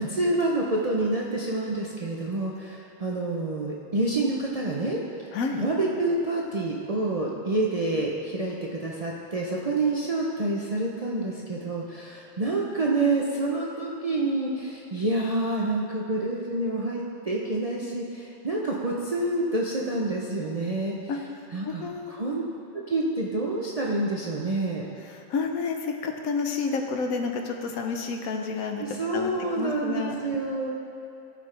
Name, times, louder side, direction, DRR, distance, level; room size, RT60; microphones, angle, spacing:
voice 1, 0.0-5.0 5.6-20.9 21.5-22.4 22.7-24.9 28.8-30.7, right 2 dB, 45° right, -4 dB, 0.5 m, -28 dB
voice 2, 5.3-5.6 21.1-21.2 21.6-22.2 25.3-28.8 29.1-30.2, left 4 dB, 80° left, 4 dB, 1.2 m, -30 dB
15.0 x 5.1 x 3.3 m, 2.6 s
omnidirectional pair, 1.4 m